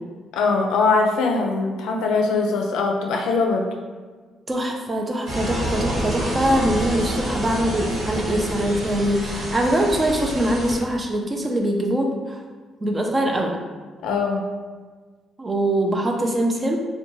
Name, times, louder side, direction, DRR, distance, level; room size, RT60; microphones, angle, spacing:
voice 1, 0.3-3.7 14.0-14.4, left 4 dB, 85° left, 2 dB, 0.4 m, -21 dB
voice 2, 4.5-12.4 12.8-13.6 15.4-16.8, right 1 dB, 25° right, 1 dB, 0.4 m, -23 dB
sound 1, 5.3-10.8, right 1 dB, 80° right, 1.0 m, -28 dB
2.6 x 2.2 x 2.9 m, 1.4 s
cardioid pair, 90°, 0 cm